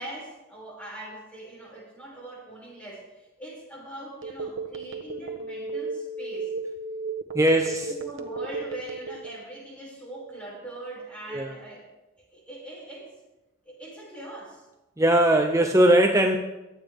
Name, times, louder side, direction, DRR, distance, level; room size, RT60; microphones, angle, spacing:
voice 1, 0.0-6.5 7.6-11.8 12.3-13.1 13.6-14.6, right 1 dB, 5° left, -5 dB, 6.2 m, -41 dB
Telephone, 4.2-9.4, right 4 dB, 65° right, 1.2 m, -33 dB
voice 2, 7.3-7.9 11.3-11.5 15.0-16.4, right 1 dB, 15° right, 4 dB, 0.7 m, -20 dB
24.0 x 9.1 x 3.6 m, 1.0 s
head